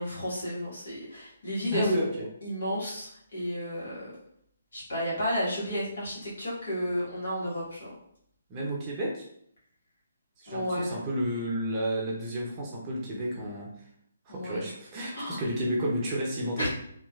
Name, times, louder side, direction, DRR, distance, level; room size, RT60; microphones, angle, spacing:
voice 1, 0.0-4.1 4.7-7.9 10.5-11.0 14.3-14.7 15.1-15.4 16.6-16.7, equal, 60° left, -6 dB, 1.4 m, -32 dB
voice 2, 1.7-2.1 8.5-9.2 10.4-13.7 14.3-16.7, equal, 25° right, -3 dB, 0.7 m, -31 dB
2.9 x 2.4 x 2.4 m, 0.69 s
figure-of-eight pair, 140°, 0 cm